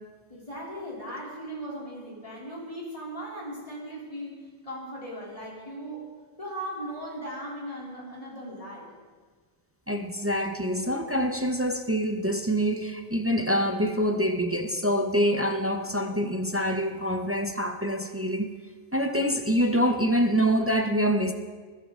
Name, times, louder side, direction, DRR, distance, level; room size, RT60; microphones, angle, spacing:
voice 1, 0.3-6.1 6.4-8.9, right 1 dB, 25° left, -4 dB, 3.5 m, -38 dB
voice 2, 9.9-18.5 18.9-21.3, equal, 15° right, 5 dB, 0.4 m, -25 dB
21.5 x 11.0 x 3.8 m, 1.5 s
omnidirectional pair, 1.4 m